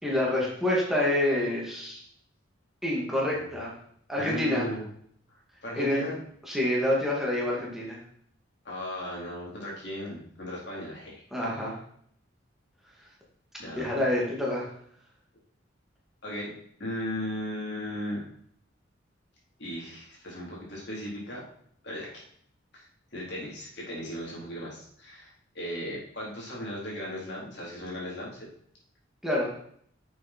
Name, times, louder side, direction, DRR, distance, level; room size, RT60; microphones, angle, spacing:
voice 1, 0.0-2.0 2.8-3.7 4.1-4.7 5.7-6.0 6.5-8.0 11.3-11.8 13.8-14.7 29.2-29.5, left 1 dB, ahead, -5 dB, 2.4 m, -27 dB
voice 2, 4.2-4.8 5.3-6.2 8.6-11.1 13.6-14.0 16.2-16.5 16.8-18.2 19.6-21.5 21.8-22.2 22.7-22.9 23.1-28.4, left 1 dB, 60° left, -4 dB, 3.9 m, -36 dB
10.5 x 7.3 x 4.5 m, 0.65 s
head